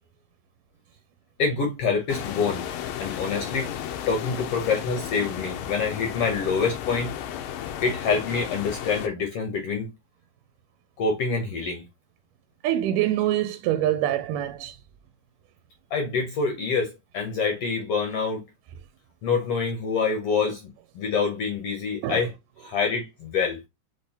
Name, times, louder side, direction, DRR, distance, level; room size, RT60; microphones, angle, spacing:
voice 1, 1.4-2.6 3.0-3.7 4.1-7.1 7.8-9.9 11.0-11.8 15.9-18.4 19.2-22.3 22.6-23.6, left 5 dB, 70° left, 1.5 m, -26 dB
Mar desde la orilla movimiento, 2.1-9.1, left 10 dB, 85° left, 2.3 m, -34 dB
voice 2, 12.6-14.8 20.4-20.5 22.0-22.2, right 12 dB, 80° right, 2.1 m, -25 dB
6.0 x 3.1 x 2.8 m
omnidirectional pair, 3.8 m